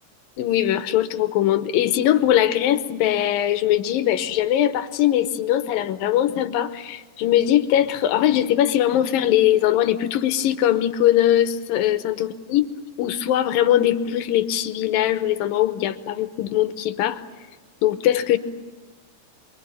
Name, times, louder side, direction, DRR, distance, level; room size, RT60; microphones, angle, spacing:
voice 1, 0.4-12.7 13.0-17.2 17.8-18.4, left 12 dB, 70° left, 2.5 m, -21 dB
28.0 x 23.0 x 8.8 m
omnidirectional pair, 4.6 m